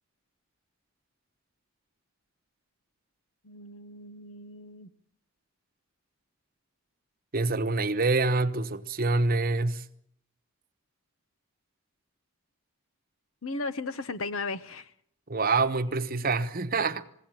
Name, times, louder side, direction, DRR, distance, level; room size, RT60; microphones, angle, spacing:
voice 1, 3.4-4.9 13.4-14.9, left 3 dB, 65° left, 1.0 m, -36 dB
voice 2, 7.3-9.8 15.3-17.0, right 3 dB, 40° right, 1.1 m, -26 dB
21.0 x 17.0 x 9.0 m
head